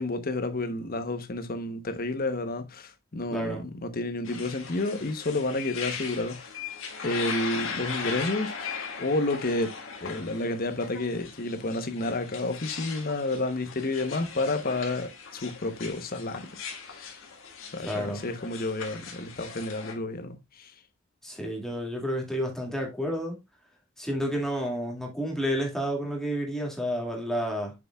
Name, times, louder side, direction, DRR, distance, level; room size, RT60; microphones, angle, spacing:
voice 1, 0.0-6.5 7.0-9.7 10.0-16.4 16.9-17.1 17.7-20.7, left 2 dB, 45° left, 1.0 m, -30 dB
voice 2, 3.3-3.6 17.8-18.2 21.2-23.4 24.0-27.7, equal, ahead, 2.2 m, -30 dB
sound 1, 4.2-19.9, left 5 dB, 70° left, 1.7 m, -39 dB
6.9 x 6.6 x 2.4 m
head